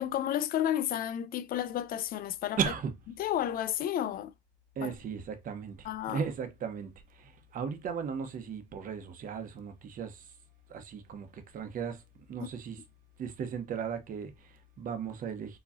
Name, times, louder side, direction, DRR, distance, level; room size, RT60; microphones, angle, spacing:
voice 1, 0.0-2.6 3.2-4.3 4.8-4.9 5.8-6.2, left 11 dB, 60° left, 0.5 m, -31 dB
voice 2, 2.6-3.0 4.8-10.3 10.7-12.0 12.3-12.8 13.2-15.6, right 7 dB, 55° right, 1.1 m, -36 dB
4.9 x 3.1 x 2.7 m
cardioid pair, 110°, 17 cm